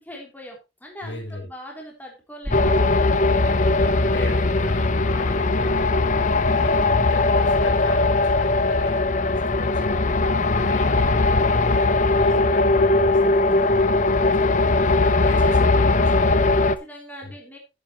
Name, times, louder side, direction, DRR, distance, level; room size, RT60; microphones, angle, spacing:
voice 1, 0.0-2.8 16.6-17.6, equal, 10° left, 0 dB, 3.4 m, -41 dB
voice 2, 1.0-1.5 3.3-10.1 10.5-16.4 17.2-17.3, left 1 dB, 90° left, 2 dB, 5.1 m, -35 dB
sound 1, 2.4-3.1 3.8-4.3 5.6-6.3 7.6-8.0 9.5-9.9 12.3-12.4, equal, 20° right, 2.3 m, -33 dB
sound 2, 2.5-16.8, left 2 dB, 45° left, 0.8 m, -19 dB
10.5 x 9.9 x 3.1 m, 0.26 s
head